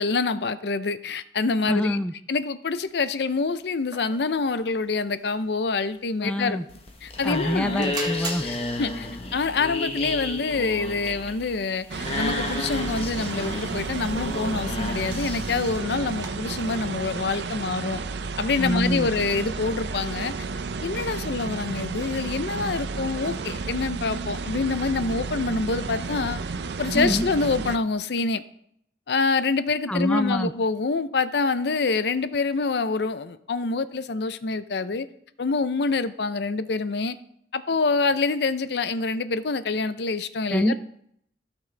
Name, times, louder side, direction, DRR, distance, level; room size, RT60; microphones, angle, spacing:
voice 1, 0.0-2.0 2.3-6.6 7.0-7.9 8.4-18.0 18.4-20.3 20.8-26.4 26.8-28.4 29.1-35.1 35.4-37.1 37.5-40.7, left 4 dB, 70° left, 13 dB, 0.5 m, -26 dB
voice 2, 1.6-2.1 6.2-6.6 7.2-8.4 18.6-19.1 26.9-27.3 29.9-30.5 40.5-40.7, equal, 5° left, 9 dB, 0.3 m, -25 dB
sound 1, 2.7-16.8, right 4 dB, 25° right, 1.2 m, -46 dB
sound 2, 6.7-15.8, left 2 dB, 35° left, 1.0 m, -32 dB
sound 3, 11.9-27.8, right 4 dB, 75° right, 0.6 m, -32 dB
16.5 x 6.0 x 3.3 m, 0.69 s
head